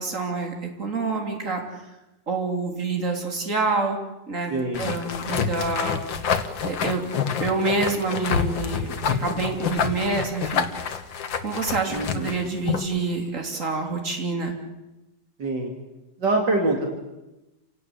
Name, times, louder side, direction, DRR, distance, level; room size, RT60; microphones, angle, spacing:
voice 1, 0.0-1.8 2.3-4.0 4.3-6.2 6.6-7.1 7.4-10.7 11.4-14.5, right 3 dB, 40° right, 2 dB, 3.7 m, -27 dB
voice 2, 4.5-4.9 11.9-12.3 15.4-15.7 16.2-16.9, right 2 dB, 65° right, 2 dB, 3.2 m, -24 dB
sound 1, 4.7-13.0, left 7 dB, 75° left, 2.1 m, -28 dB
28.5 x 18.0 x 8.3 m, 1.0 s
omnidirectional pair, 2.1 m